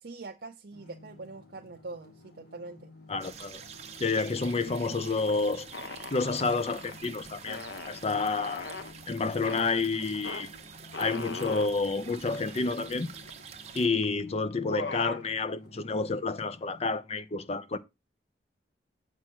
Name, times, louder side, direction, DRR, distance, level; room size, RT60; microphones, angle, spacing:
voice 1, 0.0-2.9, right 3 dB, 60° right, 0.7 m, -44 dB
sound 1, 0.7-16.8, left 2 dB, 60° left, 1.9 m, -54 dB
voice 2, 3.1-3.6 4.0-5.7 6.1-8.7 9.1-10.5 11.0-13.1 13.7-17.8, left 3 dB, 35° left, 0.6 m, -29 dB
sound 2, 3.2-13.9, right 6 dB, 40° right, 1.1 m, -47 dB
sound 3, 5.7-7.0 7.4-8.9 9.4-9.7 10.2-10.4 10.9-11.7 12.3-12.4 12.7-13.4 14.0-14.2 14.5-15.2, left 3 dB, 85° left, 0.9 m, -39 dB
7.5 x 5.6 x 4.5 m
head